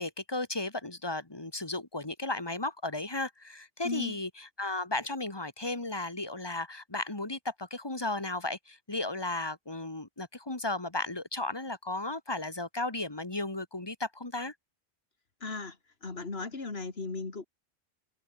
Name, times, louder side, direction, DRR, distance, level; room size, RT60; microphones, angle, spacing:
voice 1, 0.0-14.5, left 2 dB, 20° left, 2.2 m, -35 dB
voice 2, 3.8-4.2 15.4-15.8 16.0-17.5, left 3 dB, 60° left, 2.7 m, -36 dB
open air
omnidirectional pair, 1.2 m